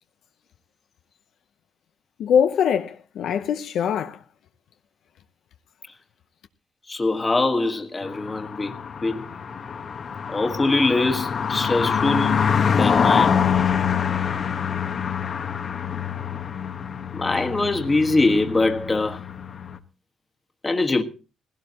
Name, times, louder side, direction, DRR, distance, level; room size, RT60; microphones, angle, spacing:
voice 1, 2.2-4.2, left 8 dB, 75° left, 0.7 m, -22 dB
voice 2, 6.9-8.7 9.0-9.3 10.3-12.4 12.8-13.4 17.1-19.2 20.6-21.0, left 2 dB, 20° left, 1.6 m, -23 dB
sound 1, 8.0-19.8, left 7 dB, 50° left, 1.2 m, -25 dB
18.0 x 16.5 x 3.0 m
cardioid pair, 90°, 0 cm